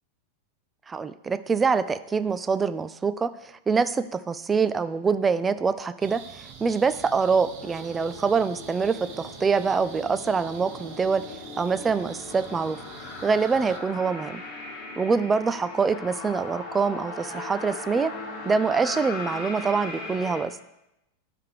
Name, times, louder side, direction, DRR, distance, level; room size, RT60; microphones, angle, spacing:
voice 1, 0.9-11.2 11.6-12.8 13.2-14.4 15.0-18.1 18.5-20.5, right 5 dB, 15° right, 14 dB, 0.3 m, -25 dB
sound 1, 6.0-13.8, right 7 dB, 40° right, 0.8 m, -45 dB
sound 2, 7.6-20.4, left 3 dB, 30° left, 1.5 m, -39 dB
10.5 x 3.4 x 4.7 m, 0.89 s
figure-of-eight pair, 90°, 0 cm